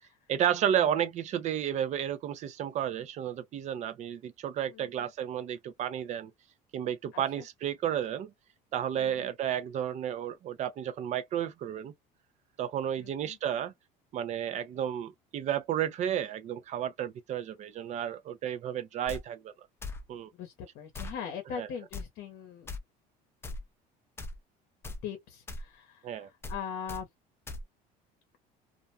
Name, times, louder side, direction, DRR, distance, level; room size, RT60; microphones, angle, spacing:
voice 1, 0.3-6.3 6.7-8.3 8.7-11.9 12.6-13.7 14.1-19.5 20.1-20.3 21.6-21.7 26.0-26.3, right 10 dB, 45° right, 0.5 m, -32 dB
voice 2, 4.7-5.1 7.1-7.4 8.9-9.3 13.0-13.4 20.3-22.7 25.0-27.1, left 8 dB, 65° left, 0.8 m, -41 dB
sound 1, 19.1-19.2 19.8-20.0 20.9-21.2 21.9-22.1 22.7-22.8 23.4-23.6 24.2-24.4 24.8-25.0 25.5-25.7 26.4-26.6 26.9-27.0 27.5-27.6, left 2 dB, 15° left, 0.4 m, -39 dB
2.5 x 2.1 x 2.7 m
cardioid pair, 135°, 17 cm